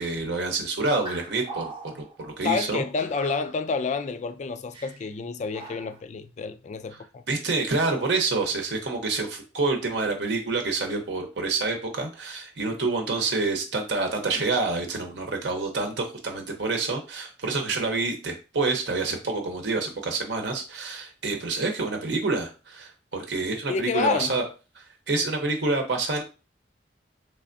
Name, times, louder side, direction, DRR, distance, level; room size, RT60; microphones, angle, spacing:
voice 1, 0.0-2.8 7.3-24.4 24.8-26.2, right 3 dB, 70° right, 0.8 m, -27 dB
sound 1, 0.8-2.2 3.2-3.7 4.7-5.1 5.5-6.0, right 2 dB, 30° right, 0.7 m, -41 dB
voice 2, 2.4-7.2 23.7-24.3, left 4 dB, 40° left, 0.3 m, -29 dB
3.5 x 3.4 x 2.5 m
head